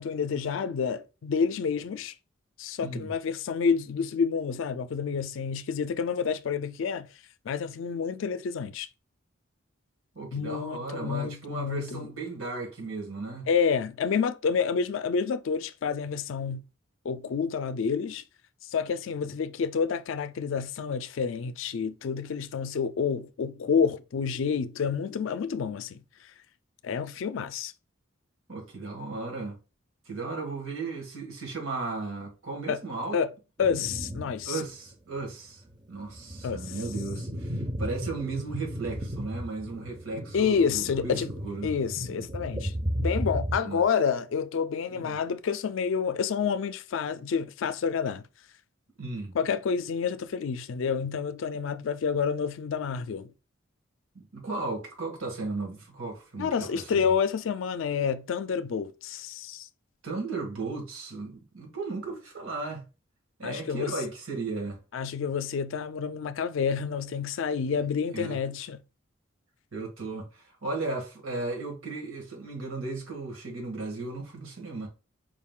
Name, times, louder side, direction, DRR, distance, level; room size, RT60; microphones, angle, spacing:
voice 1, 0.0-2.1 2.6-7.1 7.5-8.9 10.3-12.1 13.5-16.6 17.0-18.2 18.7-26.0 26.8-27.7 32.7-32.8 33.1-33.3 33.6-34.6 36.4-36.7 40.3-41.3 41.6-42.7 43.0-48.2 49.3-53.3 56.4-59.7 63.4-63.9 64.9-68.8, left 6 dB, 70° left, 0.4 m, -29 dB
voice 2, 2.8-3.1 10.1-13.5 28.5-29.6 30.0-33.2 34.4-35.6 35.9-41.7 43.6-43.8 44.9-45.2 49.0-49.4 54.1-57.1 60.0-62.9 63.4-64.8 68.1-68.4 69.7-74.9, right 3 dB, 85° right, 1.7 m, -35 dB
sound 1, 33.6-34.5 34.9-35.0 35.7-43.6, equal, 20° right, 0.4 m, -35 dB
4.9 x 2.4 x 3.6 m
head